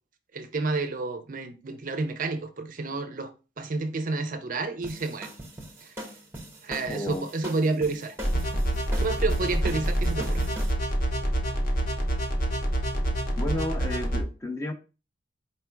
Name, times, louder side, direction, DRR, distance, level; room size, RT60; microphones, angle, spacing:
voice 1, 0.3-5.3 5.8-5.9 6.6-8.2 9.0-10.5, right 3 dB, 40° right, 0.5 m, -30 dB
sound 1, 4.8-10.7, right 1 dB, 10° right, 0.8 m, -40 dB
voice 2, 6.9-7.3 13.4-14.7, left 1 dB, 15° left, 0.4 m, -32 dB
sound 2, 8.2-14.2, right 1 dB, 45° left, 0.8 m, -27 dB
4.3 x 2.3 x 4.4 m
head